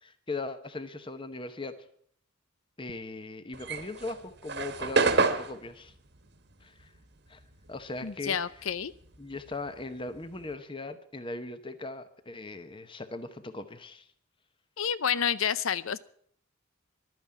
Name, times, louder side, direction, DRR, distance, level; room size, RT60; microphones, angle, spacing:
voice 1, 0.0-1.8 2.8-5.9 6.6-6.9 7.3-7.4 7.7-8.4 9.2-14.1, left 3 dB, 25° left, 11 dB, 0.9 m, -39 dB
sound 1, 3.5-8.2 8.5-10.5, right 3 dB, 55° right, 1.4 m, -30 dB
voice 2, 8.0-8.9 14.8-16.0, left 7 dB, 80° left, 18 dB, 0.7 m, -29 dB
12.0 x 9.4 x 8.6 m, 0.63 s
head